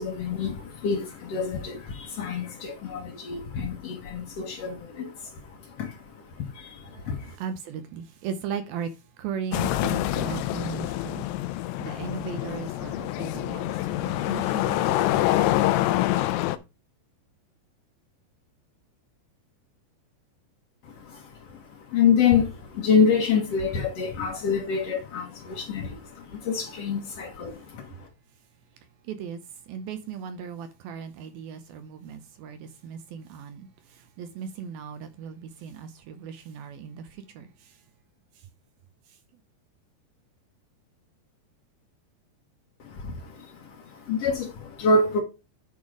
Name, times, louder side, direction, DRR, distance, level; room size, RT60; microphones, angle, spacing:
voice 1, 0.0-7.4 20.8-28.1 42.8-45.2, left 5 dB, 70° left, 1.5 m, -27 dB
voice 2, 7.4-8.9 9.2-11.2 11.8-15.3 29.1-29.4 29.7-33.7 34.2-37.1 37.4-37.5, right 7 dB, 75° right, 2.3 m, -37 dB
sound 1, 9.5-16.6, left 15 dB, 90° left, 2.8 m, -26 dB
10.5 x 3.7 x 4.8 m
omnidirectional pair, 4.9 m